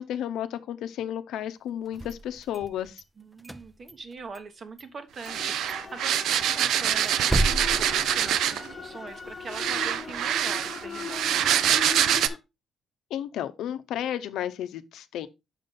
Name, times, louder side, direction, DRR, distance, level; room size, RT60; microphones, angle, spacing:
voice 1, 0.0-3.0 13.1-15.3, left 10 dB, 85° left, 0.7 m, -32 dB
sound 1, 1.9-3.0 3.4-4.5 4.8-4.9 5.3-5.4 5.7-5.8 6.2-8.7, right 1 dB, 10° right, 0.6 m, -32 dB
voice 2, 3.2-11.7, right 4 dB, 45° right, 1.1 m, -42 dB
sound 2, 5.2-8.7 9.5-12.3, right 10 dB, 80° right, 0.5 m, -25 dB
sound 3, 5.3-12.4, left 5 dB, 35° left, 1.1 m, -40 dB
6.5 x 5.3 x 3.8 m
cardioid pair, 90°, 0 cm